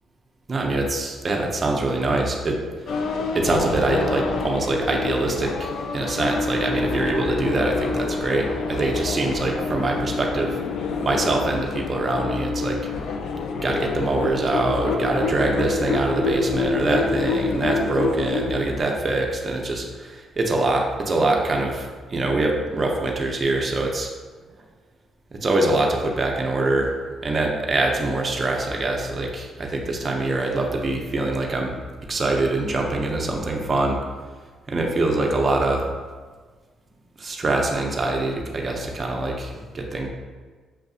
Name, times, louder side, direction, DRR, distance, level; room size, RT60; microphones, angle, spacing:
voice 1, 0.5-2.6 2.9-3.0 3.3-10.6 11.0-12.8 13.6-24.1 25.3-26.9 27.2-31.8 32.1-34.0 34.7-35.9 37.2-40.1, right 2 dB, 35° right, 0 dB, 0.7 m, -24 dB
sound 1, 2.9-18.8, left 4 dB, 70° left, 0.3 m, -27 dB
6.4 x 2.5 x 2.4 m, 1.4 s
cardioid pair, 90°, 0 cm